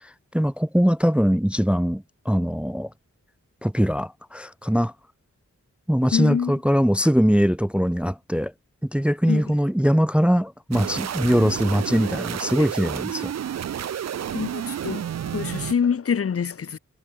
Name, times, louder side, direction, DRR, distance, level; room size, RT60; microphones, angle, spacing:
voice 1, 0.0-2.9 3.6-4.9 5.9-8.5 8.8-13.3, equal, 5° right, 0.5 m, -22 dB
voice 2, 6.1-6.5 9.3-9.4 14.3-15.1 15.3-16.8, left 7 dB, 50° left, 0.6 m, -25 dB
sound 1, 10.7-15.7, right 9 dB, 60° right, 0.5 m, -30 dB
wide cardioid pair, 60°, 30 cm